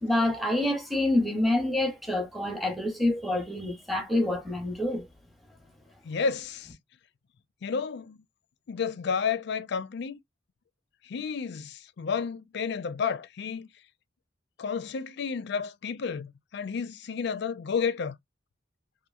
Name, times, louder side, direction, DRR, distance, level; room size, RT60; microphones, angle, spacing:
voice 1, 0.0-5.1, left 1 dB, ahead, 0.7 m, -27 dB
voice 2, 6.0-6.7 7.6-8.2 8.7-10.2 11.0-13.7 14.6-18.2, left 6 dB, 60° left, 0.4 m, -31 dB
2.8 x 2.5 x 2.4 m
head